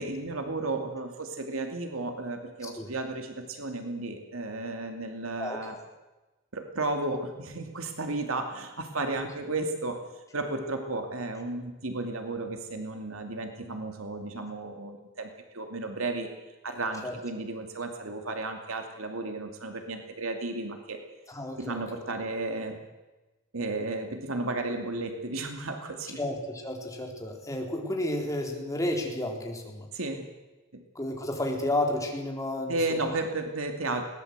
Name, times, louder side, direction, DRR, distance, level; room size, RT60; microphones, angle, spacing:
voice 1, 0.0-5.8 6.5-10.0 10.3-16.3 16.6-21.0 21.6-22.8 23.5-26.2 29.9-30.3 30.7-30.8 32.7-34.0, right 2 dB, 90° right, 5 dB, 2.6 m, -33 dB
voice 2, 21.3-21.8 26.2-29.9 31.0-33.0, left 1 dB, 15° left, 1 dB, 3.9 m, -32 dB
21.0 x 18.5 x 8.1 m, 1.1 s
head